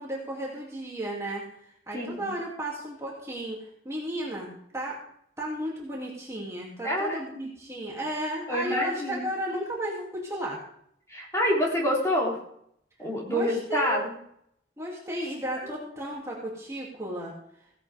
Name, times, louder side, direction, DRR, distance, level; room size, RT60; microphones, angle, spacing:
voice 1, 0.0-1.4 1.9-5.0 5.4-10.6 13.3-14.1 14.8-17.3, right 1 dB, 15° right, -4 dB, 2.7 m, -34 dB
voice 2, 1.9-2.3 6.8-7.2 8.5-9.3 11.1-12.4 13.0-14.1 15.6-15.7, equal, 15° left, -3 dB, 3.4 m, -27 dB
16.5 x 11.0 x 3.5 m, 0.70 s
head